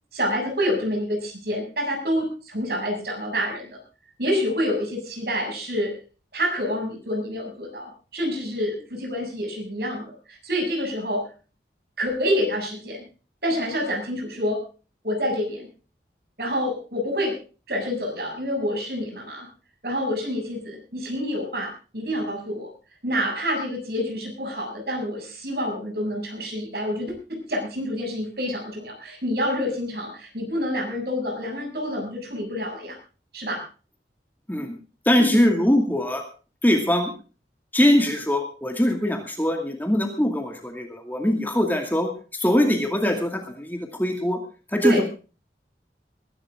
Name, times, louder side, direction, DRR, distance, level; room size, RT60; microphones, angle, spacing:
voice 1, 0.1-3.8 4.2-5.9 6.3-11.2 12.0-13.0 13.4-14.6 15.0-15.7 16.4-17.4 17.7-19.5 19.8-22.7 23.0-33.0 33.3-33.6 35.1-35.4 44.8-45.0, equal, 60° right, 2 dB, 7.2 m, -27 dB
voice 2, 35.1-36.2 36.6-37.1 37.7-44.4 44.7-45.1, left 1 dB, 10° left, 3 dB, 2.3 m, -22 dB
21.0 x 12.5 x 3.7 m, 0.36 s
head